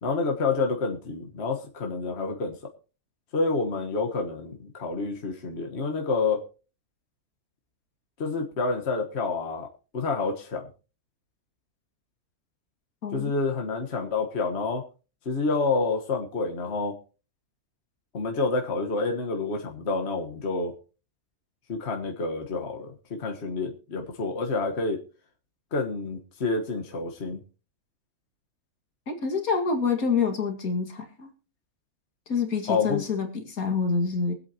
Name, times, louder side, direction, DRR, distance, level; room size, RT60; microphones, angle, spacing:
voice 1, 0.0-2.5 3.3-6.4 8.2-9.7 9.9-10.7 13.1-14.8 15.2-17.0 18.1-20.7 21.7-25.0 25.7-27.4 32.7-33.0, left 3 dB, 45° left, 3 dB, 1.6 m, -28 dB
voice 2, 29.1-31.3 32.3-34.3, left 5 dB, 70° left, 4 dB, 2.5 m, -27 dB
23.5 x 8.3 x 2.9 m, 0.34 s
omnidirectional pair, 1.6 m